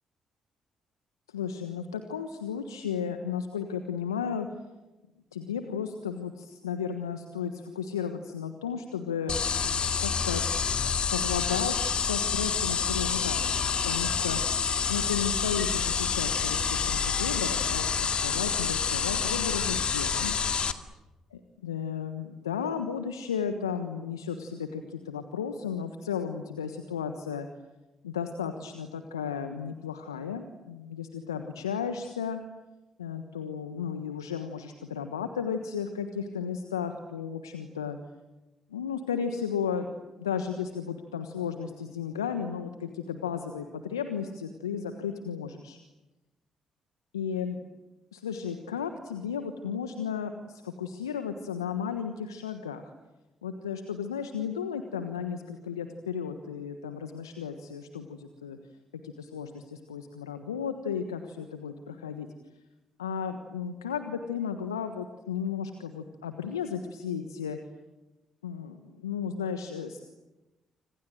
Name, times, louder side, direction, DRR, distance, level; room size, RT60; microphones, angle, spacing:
voice 1, 1.3-4.5 5.3-9.4 9.6-10.4 11.0-13.6 13.8-20.4 21.6-27.5 28.0-32.4 33.0-38.0 38.7-45.8 47.1-47.6 48.1-52.9 53.4-58.6 59.0-62.3 63.0-67.6 68.4-70.0, left 7 dB, 85° left, 7 dB, 1.3 m, -34 dB
sound 1, 9.3-20.7, left 6 dB, 50° left, 2.1 m, -28 dB
28.5 x 26.5 x 7.9 m, 1.1 s
figure-of-eight pair, 40°, 2 cm